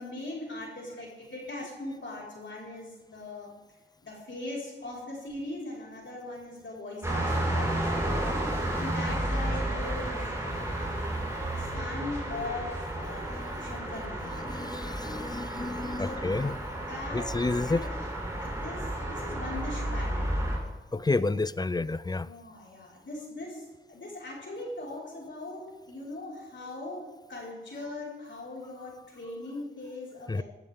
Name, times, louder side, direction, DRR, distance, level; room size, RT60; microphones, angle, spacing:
voice 1, 0.0-3.5 4.0-8.3 8.7-11.1 11.6-14.7 16.1-16.2 16.9-17.3 17.7-17.9 18.4-20.3 20.9-21.3 22.2-30.4, left 2 dB, 70° left, -4 dB, 5.0 m, -40 dB
sound 1, 7.0-20.6, right 1 dB, 15° right, 5.2 m, -32 dB
voice 2, 13.1-13.7 14.4-16.7 17.1-17.9 20.9-22.3 26.7-26.8 30.3-30.4, left 3 dB, 20° left, 18 dB, 0.4 m, -30 dB
17.0 x 12.0 x 3.7 m, 1.2 s
wide cardioid pair, 65°, 20 cm